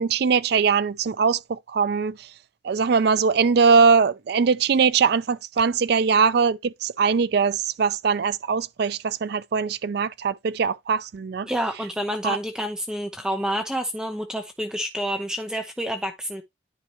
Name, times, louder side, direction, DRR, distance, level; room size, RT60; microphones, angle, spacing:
voice 1, 0.0-2.2 2.6-11.5 12.2-12.4, right 5 dB, 55° right, 0.4 m, -21 dB
voice 2, 11.4-16.4, equal, 5° right, 0.7 m, -28 dB
10.0 x 4.4 x 3.0 m
head